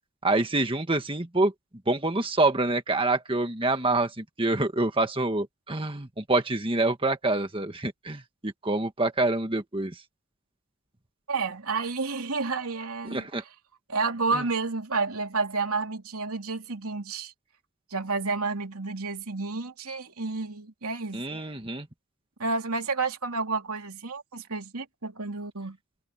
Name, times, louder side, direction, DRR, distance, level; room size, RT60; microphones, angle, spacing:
voice 1, 0.2-1.5 1.9-9.9 13.1-13.4 14.3-14.4 21.1-21.9, right 2 dB, 25° right, 1.6 m, -26 dB
voice 2, 11.3-13.3 13.9-17.3 17.9-21.2 22.4-25.8, right 4 dB, 85° right, 3.0 m, -30 dB
head